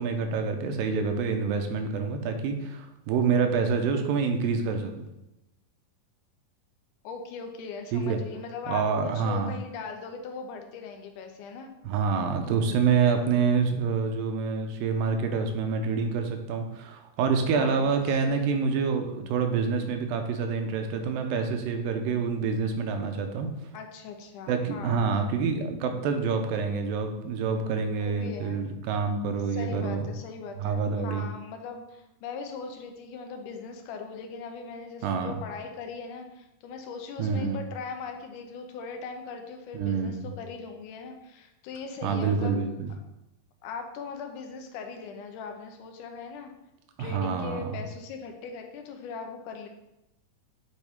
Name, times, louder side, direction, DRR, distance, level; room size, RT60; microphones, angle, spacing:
voice 1, 0.0-5.1 7.9-8.2 8.7-9.5 11.8-23.5 24.5-30.1 30.6-31.3 35.0-35.4 37.2-37.6 39.7-40.3 42.0-42.9 47.0-47.8, right 5 dB, 85° right, 5 dB, 2.4 m, -27 dB
voice 2, 7.0-11.7 17.5-18.7 23.7-25.0 28.0-28.6 29.5-42.6 43.6-46.5 47.0-49.7, left 5 dB, 75° left, 5 dB, 2.1 m, -40 dB
8.2 x 4.6 x 3.5 m, 0.90 s
omnidirectional pair, 4.1 m